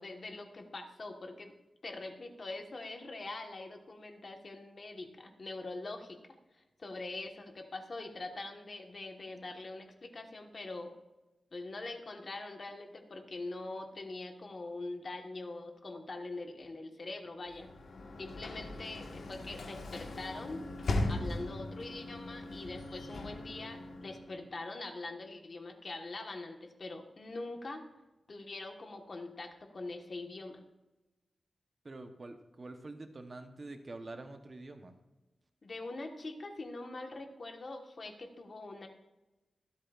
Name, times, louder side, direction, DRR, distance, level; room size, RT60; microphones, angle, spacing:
voice 1, 0.0-1.5 1.8-6.2 6.5-10.9 11.5-17.7 18.2-20.6 21.1-27.9 28.3-30.6 35.6-38.9, left 2 dB, 45° left, 4 dB, 1.3 m, -43 dB
Sliding door / Slam, 17.5-24.5, left 2 dB, 80° left, 1.5 m, -39 dB
voice 2, 31.8-35.0, right 2 dB, 35° right, 6 dB, 0.9 m, -46 dB
24.0 x 8.5 x 2.5 m, 1.0 s
wide cardioid pair, 155°, 0 cm